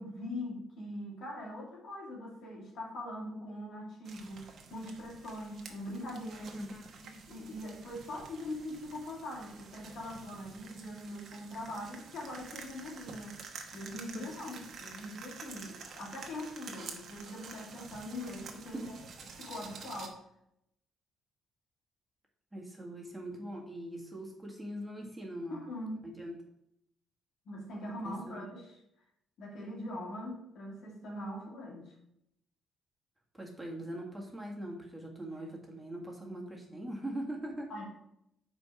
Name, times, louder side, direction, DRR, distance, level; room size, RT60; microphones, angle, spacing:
voice 1, 0.0-6.6 7.0-13.4 13.7-18.9 19.4-20.2 25.5-26.1 27.4-28.7 29.4-31.9 37.7-37.8, left 1 dB, 70° left, -3 dB, 2.6 m, -42 dB
sound 1, 4.0-20.1, right 5 dB, 60° right, 1.1 m, -49 dB
voice 2, 6.5-6.9 14.1-14.3 18.7-18.9 22.5-25.6 26.0-26.3 28.0-28.4 33.3-37.7, right 1 dB, 10° right, -1 dB, 1.9 m, -41 dB
5.2 x 4.4 x 6.1 m, 0.78 s
supercardioid pair, 70°, 0 cm